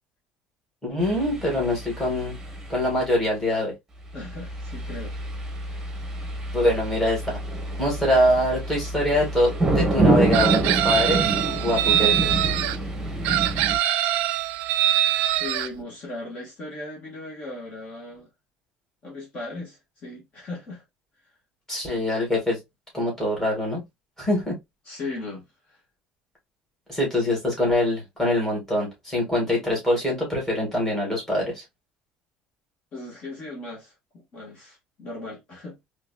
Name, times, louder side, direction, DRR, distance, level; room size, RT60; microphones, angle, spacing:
voice 1, 0.8-2.4 2.7-3.8 6.5-7.2 7.8-11.3 11.6-12.3 21.7-22.6 22.9-23.8 24.2-24.6 26.9-31.6, left 1 dB, 10° left, 2.2 m, -24 dB
sound 1, 1.0-2.9 4.2-13.8, right 2 dB, 10° right, 1.3 m, -27 dB
voice 2, 4.1-5.2 15.4-18.3 19.0-20.8 24.8-25.8 32.9-35.8, left 2 dB, 40° left, 1.6 m, -37 dB
Chicken rooster, 10.3-12.8 13.2-15.7, right 12 dB, 85° right, 0.4 m, -23 dB
3.9 x 3.2 x 2.4 m
cardioid pair, 150°, 3 cm